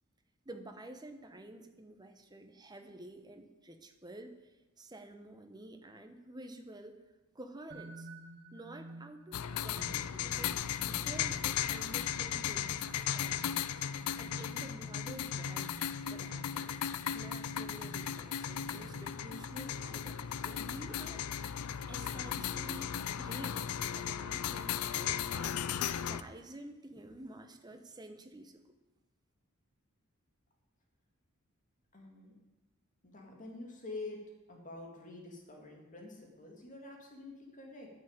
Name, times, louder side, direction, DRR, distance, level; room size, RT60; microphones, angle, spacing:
voice 1, 0.4-7.0 7.3-8.1 8.5-10.6 10.9-13.7 14.2-28.6, right 1 dB, 20° right, 6 dB, 1.0 m, -50 dB
sound 1, 7.7-19.4, right 1 dB, 50° right, 1.7 m, -53 dB
sound 2, 9.3-26.2, left 9 dB, 90° left, 0.5 m, -36 dB
voice 2, 31.9-32.3 33.0-34.2 34.5-37.9, left 2 dB, 35° left, 1 dB, 2.3 m, -47 dB
10.5 x 6.8 x 9.0 m, 1.1 s
head